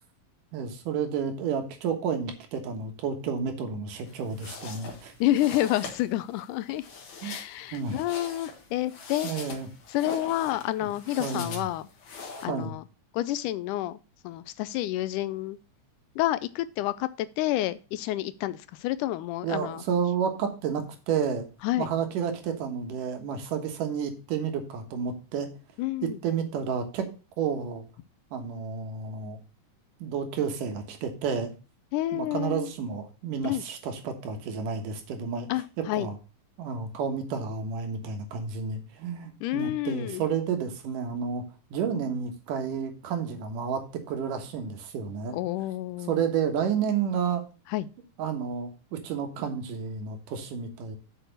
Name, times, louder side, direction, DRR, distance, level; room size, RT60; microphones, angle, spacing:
voice 1, 0.5-5.1 7.2-7.3 7.7-8.0 9.2-9.7 11.2-11.7 12.5-12.7 19.4-21.5 21.8-25.5 26.0-27.1 27.4-27.8 28.3-29.4 30.0-31.5 32.1-35.5 35.8-36.1 36.6-41.4 41.7-45.4 46.1-47.4 48.2-51.0, right 6 dB, 80° right, 3.0 m, -31 dB
sound 1, 4.1-12.5, left 4 dB, 50° left, 1.7 m, -42 dB
voice 2, 5.2-6.8 7.2-9.3 9.9-11.9 12.4-12.8 13.1-14.0 14.2-15.6 16.2-19.8 21.6-21.9 25.8-26.2 31.9-32.7 33.4-33.6 35.5-36.1 39.4-40.2 45.3-46.2 47.7-47.9, left 14 dB, 80° left, 2.0 m, -29 dB
6.8 x 6.1 x 6.6 m
omnidirectional pair, 3.7 m